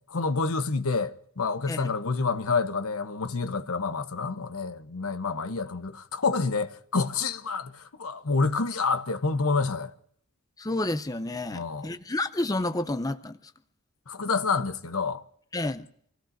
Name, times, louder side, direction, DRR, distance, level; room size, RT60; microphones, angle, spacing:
voice 1, 0.1-9.9 11.5-11.9 14.1-15.2, left 4 dB, 75° left, 1.0 m, -28 dB
voice 2, 10.6-13.5 15.5-15.9, left 2 dB, 15° left, 0.6 m, -30 dB
27.0 x 17.0 x 2.6 m
head